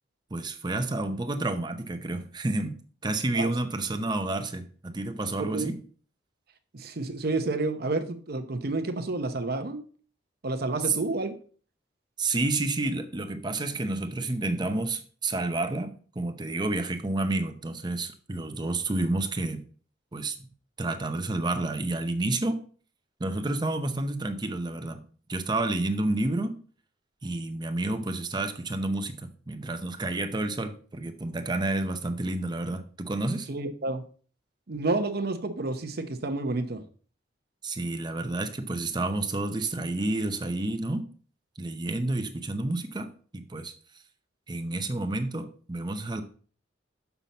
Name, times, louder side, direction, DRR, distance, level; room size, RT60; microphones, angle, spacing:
voice 1, 0.3-2.8 3.0-5.8 10.9-11.0 12.2-19.6 20.1-20.3 20.8-22.6 23.2-25.0 25.3-26.6 27.2-33.5 37.6-41.1 41.6-43.7 44.5-46.2, right 2 dB, 25° right, 7 dB, 0.7 m, -30 dB
voice 2, 5.4-5.7 6.7-9.8 10.4-11.3 33.5-34.0 34.7-36.8, right 2 dB, 55° right, 7 dB, 0.8 m, -30 dB
6.9 x 5.8 x 4.0 m, 0.43 s
head